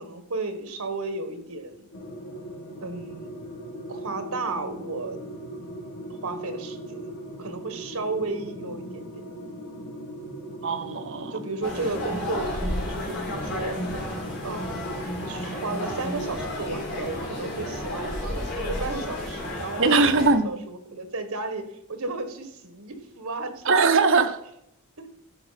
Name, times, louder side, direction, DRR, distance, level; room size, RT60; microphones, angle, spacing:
voice 1, 0.0-1.9 2.8-3.4 3.9-5.2 6.1-7.1 7.4-9.2 11.3-13.8 14.4-23.9 25.0-25.1, right 3 dB, 75° right, 1.5 m, -34 dB
sound 1, 1.9-18.2, right 1 dB, 90° left, 2.4 m, -39 dB
voice 2, 10.6-11.4 19.8-20.6 23.6-24.3, right 4 dB, 60° right, 0.9 m, -21 dB
sound 2, 11.6-20.3, left 1 dB, 50° left, 3.8 m, -32 dB
13.0 x 5.0 x 5.7 m
head